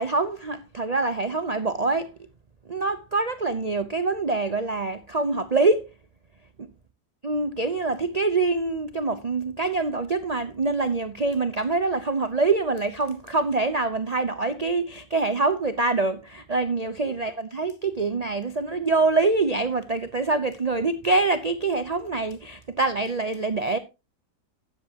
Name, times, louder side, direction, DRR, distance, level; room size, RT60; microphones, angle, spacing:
voice 1, 0.0-2.1 2.6-5.9 6.6-6.7 7.2-23.8, right 3 dB, 50° right, 0.4 m, -25 dB
13.0 x 9.3 x 2.9 m
omnidirectional pair, 1.8 m